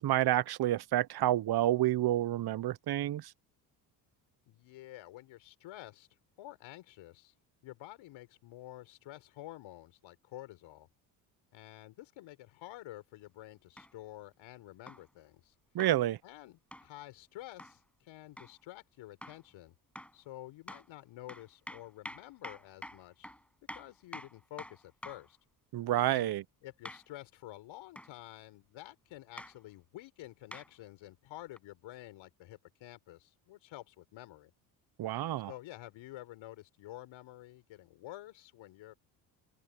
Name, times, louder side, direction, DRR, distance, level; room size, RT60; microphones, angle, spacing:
voice 1, 0.0-3.3 15.7-16.2 25.7-26.4 35.0-35.5, right 13 dB, 50° right, 1.1 m, -29 dB
voice 2, 4.5-6.1 6.4-7.3 7.6-10.9 11.5-15.5 16.2-19.7 20.1-23.3 23.7-25.4 26.1-26.3 26.6-34.5 35.5-38.9, left 15 dB, 65° left, 5.1 m, -50 dB
sound 1, 13.8-13.9 14.9-15.1 15.8-16.0 16.7-16.9 17.6-17.8 18.4-18.6 19.2-19.5 20.0-20.2 20.7-20.9 21.3-25.3 26.9-27.1 28.0-28.1 29.4-29.6 30.5-30.7 31.6-31.7, equal, ahead, 7.7 m, -47 dB
open air
hypercardioid pair, 70°, 50 cm